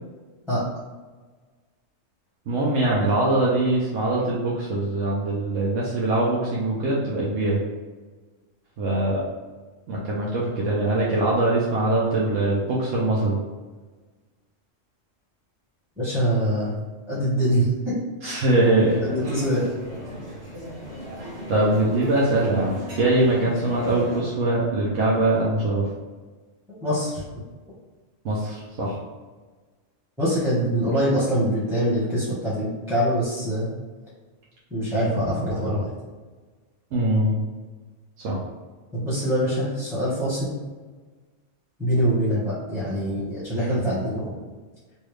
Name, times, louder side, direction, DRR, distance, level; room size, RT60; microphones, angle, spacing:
voice 1, 2.5-7.6 8.8-9.2 9.9-13.4 18.2-19.0 21.5-25.8 28.2-29.0 36.9-37.4 38.2-38.4, right 2 dB, 80° right, -6 dB, 1.0 m, -22 dB
voice 2, 16.0-16.7 17.1-18.0 19.0-19.7 26.8-27.2 30.2-33.7 34.7-35.9 38.9-40.5 41.8-44.3, equal, ahead, -10 dB, 1.0 m, -24 dB
sound 1, 18.8-24.2, equal, 60° right, 1.3 m, -35 dB
3.3 x 2.6 x 3.2 m, 1.3 s
omnidirectional pair, 1.3 m